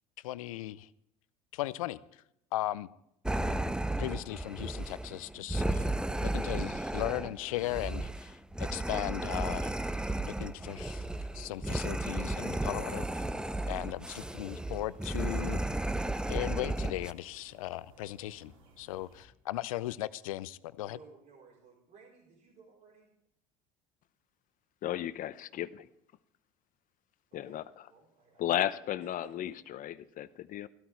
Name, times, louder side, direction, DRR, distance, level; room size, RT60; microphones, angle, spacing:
voice 1, 0.2-0.9 1.5-2.0 2.5-2.9 4.0-5.9 6.2-9.7 10.2-11.0 11.3-13.2 13.7-15.6 16.3-18.5 18.8-21.0, left 16 dB, 85° left, 0.6 m, -37 dB
sound 1, 3.3-17.1, right 1 dB, 5° right, 0.7 m, -34 dB
sound 2, 9.5-19.3, equal, 85° right, 2.6 m, -60 dB
voice 2, 20.8-23.1 27.3-27.6 27.9-28.4 29.0-29.3, right 4 dB, 50° right, 4.3 m, -57 dB
voice 3, 24.8-25.9 27.3-27.9 28.4-30.7, left 12 dB, 50° left, 0.8 m, -34 dB
15.0 x 13.0 x 4.6 m
hypercardioid pair, 80°, 17 cm